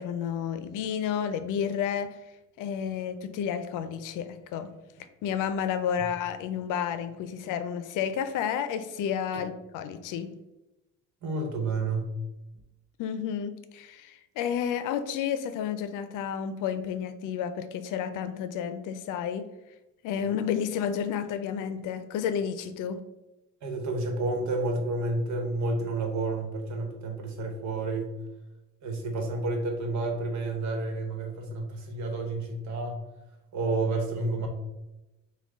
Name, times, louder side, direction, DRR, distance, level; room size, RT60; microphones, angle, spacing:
voice 1, 0.0-2.2 2.6-4.7 5.2-10.3 13.0-19.5 20.0-23.0, left 8 dB, 80° left, 11 dB, 0.5 m, -31 dB
voice 2, 11.2-12.1 23.6-28.2 28.8-33.0 33.5-34.5, right 2 dB, 65° right, 3 dB, 1.1 m, -30 dB
6.1 x 2.3 x 3.5 m, 0.99 s
cardioid pair, 120°, 31 cm